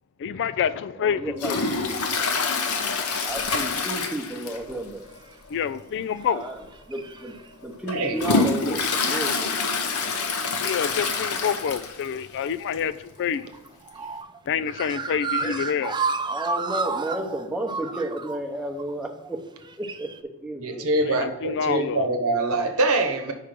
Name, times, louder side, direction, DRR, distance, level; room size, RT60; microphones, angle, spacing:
voice 1, 0.2-1.6 2.0-2.2 5.5-6.5 10.5-13.6 14.5-16.0 21.0-22.1, left 7 dB, 55° left, 0.4 m, -27 dB
voice 2, 1.0-1.6 3.2-5.1 6.3-6.6 6.9-9.5 15.4-15.5 16.3-19.4 19.8-20.1 20.4-20.9, right 1 dB, 5° right, 0.9 m, -32 dB
Toilet flush, 1.4-4.8 5.1-5.2 5.6-5.7 6.6-6.7 7.2-12.1 12.5-12.6 12.7-12.8 13.9-14.0, left 4 dB, 70° left, 0.9 m, -26 dB
sound 1, 5.3-5.4 6.2-6.5 6.7-7.5 8.2-8.5 10.8-11.5 13.2-20.2, right 4 dB, 20° right, 0.4 m, -31 dB
voice 3, 7.9-8.2 20.6-23.3, right 2 dB, 70° right, 1.0 m, -24 dB
5.0 x 4.9 x 5.9 m
head